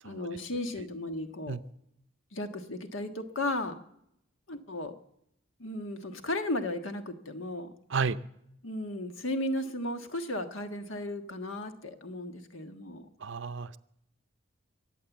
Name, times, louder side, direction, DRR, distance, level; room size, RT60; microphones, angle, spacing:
voice 1, 0.0-1.6 2.3-3.8 4.5-4.9 5.6-7.7 8.6-13.1, left 1 dB, 70° left, 7 dB, 1.5 m, -35 dB
voice 2, 13.2-13.8, right 5 dB, 65° right, 14 dB, 0.6 m, -31 dB
23.0 x 8.7 x 7.1 m, 0.77 s
head